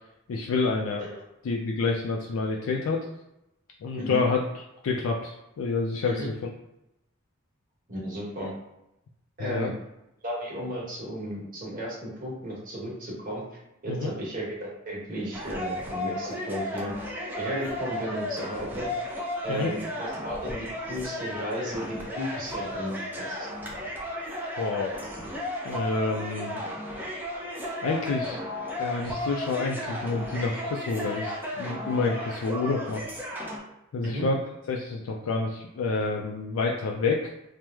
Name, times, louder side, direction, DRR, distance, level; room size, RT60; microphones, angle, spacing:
voice 1, 0.3-1.1 1.4-3.1 3.8-4.4 4.8-6.5 9.4-9.7 13.9-14.1 19.5-19.7 24.6-24.9 25.6-26.6 27.8-28.4 28.8-33.1 33.9-34.4 34.7-37.3, left 3 dB, 70° left, 0 dB, 0.3 m, -28 dB
voice 2, 7.9-8.5 9.4-9.7 10.2-13.4 13.8-16.9 17.4-18.9 19.4-23.5 34.0-34.3, equal, 40° right, -5 dB, 1.1 m, -34 dB
sound 1, 15.3-33.6, left 1 dB, 10° right, 0.5 m, -34 dB
3.0 x 2.0 x 3.4 m, 0.88 s
head